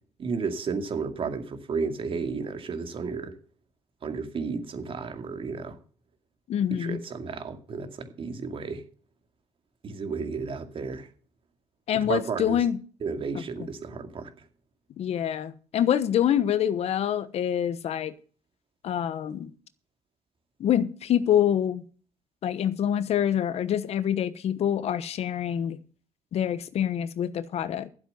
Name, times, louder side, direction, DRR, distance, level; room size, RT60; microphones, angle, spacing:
voice 1, 0.2-3.4 4.0-5.8 6.7-8.9 9.8-11.1 11.9-12.6 13.0-14.3, right 5 dB, 50° right, 2.2 m, -32 dB
voice 2, 6.5-7.0 11.9-12.8 15.0-18.1 18.8-19.5 20.6-21.9 22.4-25.8 26.3-27.9, left 10 dB, 60° left, 1.1 m, -26 dB
12.0 x 7.9 x 6.8 m
cardioid pair, 90°, 12 cm